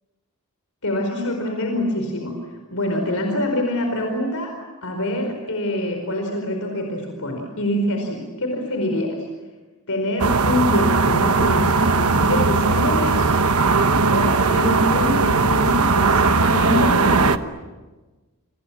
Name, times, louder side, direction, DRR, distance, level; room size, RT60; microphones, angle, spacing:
voice 1, 0.8-2.3 2.7-4.5 4.8-9.3 9.9-13.3 14.1-17.4, left 1 dB, 70° left, 3 dB, 4.9 m, -25 dB
sound 1, 10.2-17.4, right 4 dB, 75° right, 1.2 m, -18 dB
30.0 x 26.0 x 7.5 m, 1.2 s
head